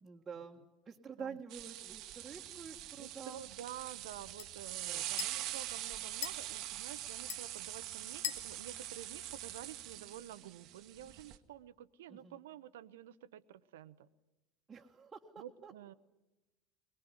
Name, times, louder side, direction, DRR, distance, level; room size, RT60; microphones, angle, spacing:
voice 1, 0.0-3.4 4.8-5.1 12.1-12.4 14.7-15.7, right 6 dB, 25° right, -2 dB, 1.7 m, -48 dB
sound 1, 1.5-11.4, right 14 dB, 55° right, 1.3 m, -44 dB
sound 2, 2.2-10.0, left 9 dB, 70° left, 1.4 m, -49 dB
voice 2, 3.0-14.1 15.4-15.9, right 11 dB, 70° right, 16 dB, 0.8 m, -50 dB
22.5 x 21.5 x 9.7 m, 1.0 s
figure-of-eight pair, 70°, 0 cm